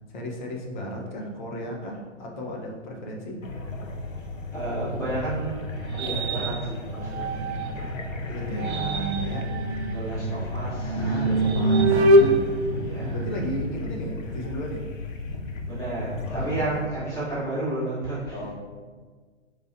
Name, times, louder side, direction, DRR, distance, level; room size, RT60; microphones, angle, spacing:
voice 1, 0.1-3.4 7.2-7.7 8.3-8.7 9.2-9.5 10.9-12.4 13.0-14.9 16.3-16.6 18.3-18.5, equal, 40° left, 0 dB, 0.8 m, -34 dB
sound 1, 3.4-16.9, left 2 dB, 90° left, 0.6 m, -34 dB
voice 2, 4.5-7.5 8.5-9.0 9.9-11.2 12.8-13.2 15.7-18.4, right 2 dB, 10° left, -10 dB, 1.1 m, -32 dB
sound 2, 4.8-7.9 8.4-13.6, right 1 dB, 60° right, 0.5 m, -25 dB
4.6 x 2.9 x 2.6 m, 1.5 s
figure-of-eight pair, 120°, 38 cm